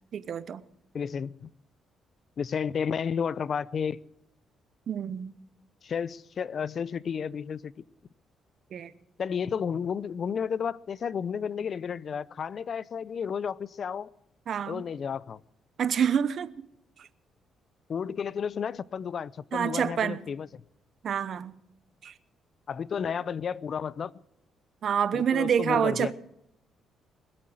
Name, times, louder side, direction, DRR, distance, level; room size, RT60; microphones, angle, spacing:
voice 1, 0.1-0.6 4.9-5.3 8.7-8.9 14.5-14.8 15.8-16.6 17.0-17.1 19.5-20.2 21.0-21.6 22.0-22.1 24.8-26.1, right 8 dB, 60° right, 1.0 m, -27 dB
voice 2, 0.9-1.5 2.4-4.0 5.8-7.7 9.2-14.1 14.7-15.4 17.9-20.5 22.7-24.1 25.1-26.1, left 7 dB, 50° left, 0.6 m, -32 dB
21.0 x 8.6 x 7.8 m
cardioid pair, 90°, 0 cm